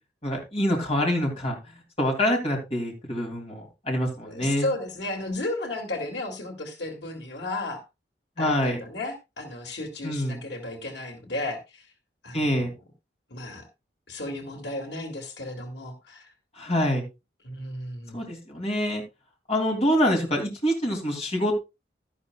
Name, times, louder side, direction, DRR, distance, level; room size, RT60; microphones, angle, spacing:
voice 1, 0.2-1.6 2.0-4.7 8.4-8.8 10.0-10.4 12.3-12.7 16.6-17.0 18.1-19.0 19.5-21.6, equal, 35° left, 1 dB, 2.9 m, -25 dB
voice 2, 4.2-7.8 8.4-11.8 12.2-12.7 13.3-13.7 14.1-16.3 17.4-18.2, left 2 dB, 85° left, 3 dB, 2.5 m, -34 dB
12.0 x 11.0 x 2.3 m, 0.25 s
head